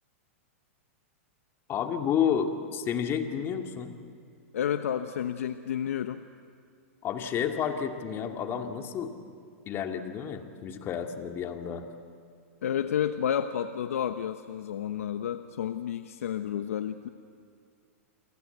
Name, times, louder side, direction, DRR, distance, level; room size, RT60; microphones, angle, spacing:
voice 1, 1.7-3.9 7.0-9.1 9.7-11.8, left 8 dB, 30° left, 4 dB, 2.5 m, -30 dB
voice 2, 4.5-6.2 12.6-17.1, left 9 dB, 80° left, 9 dB, 1.0 m, -31 dB
29.5 x 23.5 x 8.1 m, 2.3 s
hypercardioid pair, 130°, 8 cm